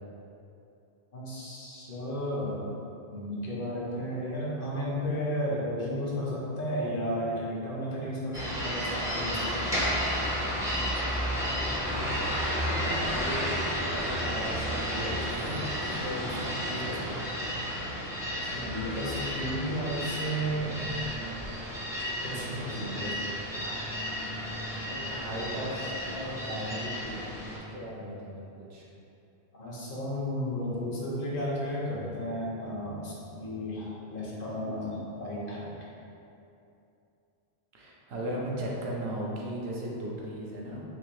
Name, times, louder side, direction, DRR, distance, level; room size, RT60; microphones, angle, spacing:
voice 1, 1.1-2.7 3.1-9.8 15.4-15.6 16.2-16.3 18.1-21.0 22.2-23.1 29.5-35.7 40.6-40.8, equal, 60° left, -6 dB, 0.8 m, -33 dB
sound 1, 8.3-27.6, equal, 5° right, 0.6 m, -32 dB
voice 2, 10.7-11.9 12.3-13.6 13.8-15.7 16.0-17.5 22.7-23.3 24.0-24.1 24.8-27.2 27.7-28.9 37.7-40.8, equal, 75° right, -4 dB, 0.9 m, -37 dB
3.4 x 2.7 x 3.0 m, 2.7 s
omnidirectional pair, 1.1 m